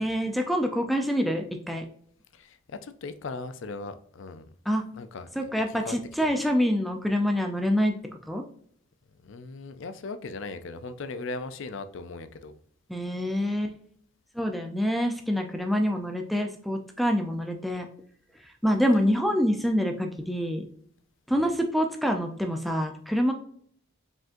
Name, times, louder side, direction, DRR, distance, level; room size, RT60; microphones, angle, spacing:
voice 1, 0.0-1.9 4.7-4.8 5.4-7.9 8.3-8.4 12.9-13.8 14.3-17.9 18.4-20.6 21.3-23.3, equal, ahead, 0.4 m, -26 dB
voice 2, 2.3-4.5 4.9-5.5 5.9-6.0 6.3-6.4 9.2-12.6 21.3-21.5, left 3 dB, 60° left, 0.4 m, -38 dB
5.0 x 3.7 x 2.6 m
head